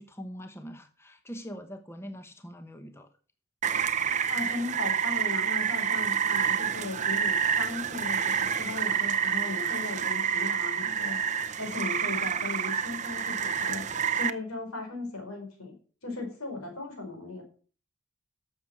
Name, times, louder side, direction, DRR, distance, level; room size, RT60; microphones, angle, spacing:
voice 1, 0.0-3.1, equal, 10° left, 7 dB, 1.0 m, -43 dB
Rain, 3.6-14.3, right 7 dB, 35° right, 0.6 m, -28 dB
voice 2, 4.3-11.2 11.6-15.7 16.0-17.4, left 3 dB, 85° left, 3 dB, 4.9 m, -37 dB
12.0 x 7.3 x 6.2 m, 0.40 s
head